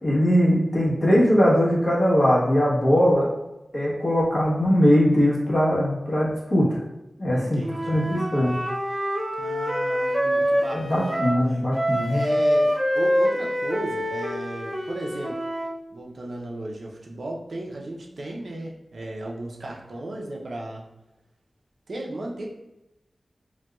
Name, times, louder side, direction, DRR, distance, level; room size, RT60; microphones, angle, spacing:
voice 1, 0.0-3.3 3.7-6.8 7.2-7.6 7.9-8.5 10.7-12.2, equal, 45° left, -5 dB, 1.0 m, -20 dB
voice 2, 7.3-8.1 9.3-11.2 12.1-15.4 15.9-20.9 21.9-22.5, right 1 dB, 75° right, -1 dB, 0.5 m, -35 dB
Wind instrument woodwind instrument, 7.6-11.4 11.7-15.7, equal, 15° right, 0.6 m, -25 dB
4.0 x 2.2 x 2.3 m, 0.95 s
wide cardioid pair, 85°, 0 cm